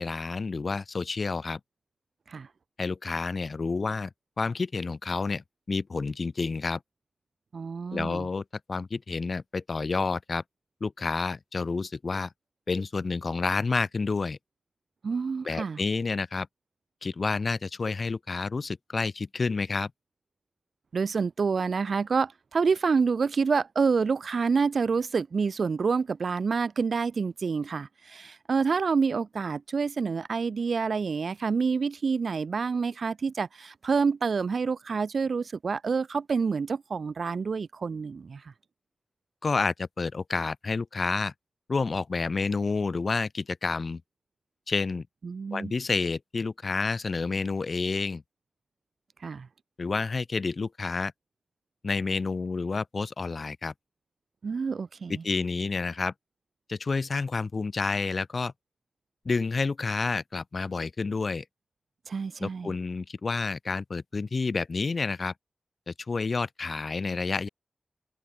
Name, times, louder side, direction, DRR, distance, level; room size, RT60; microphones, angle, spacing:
voice 1, 0.0-1.6 2.8-4.1 4.4-6.8 7.9-10.4 10.8-12.3 12.7-14.4 15.4-16.5 17.0-19.9 39.4-41.3 41.7-44.0 44.7-45.0 45.5-48.2 49.8-51.1 51.8-53.7 55.1-56.1 56.7-58.5 59.2-61.4 62.4-65.3 65.9-67.5, left 4 dB, 65° left, 0.9 m, -29 dB
voice 2, 7.5-8.3 15.0-15.8 20.9-38.4 45.2-45.7 49.2-49.5 54.4-55.2 62.1-62.7, right 5 dB, 80° right, 0.4 m, -28 dB
cardioid pair, 50°, 0 cm